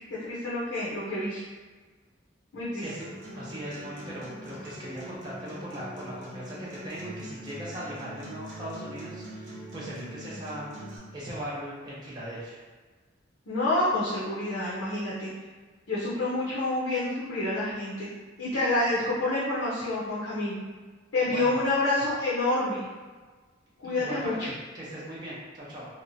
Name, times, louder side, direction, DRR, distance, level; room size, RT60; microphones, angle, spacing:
voice 1, 0.2-1.4 2.5-2.9 13.5-15.3 15.9-18.1 18.4-20.6 21.1-22.9 23.8-24.5, left 2 dB, 80° left, -9 dB, 0.7 m, -28 dB
voice 2, 2.7-3.1 3.3-10.6 11.1-12.6 21.2-21.6 23.8-25.9, equal, 20° right, -8 dB, 0.6 m, -39 dB
Acoustic guitar, 3.0-11.0, right 1 dB, 65° right, 0.9 m, -43 dB
2.9 x 2.1 x 2.6 m, 1.4 s
head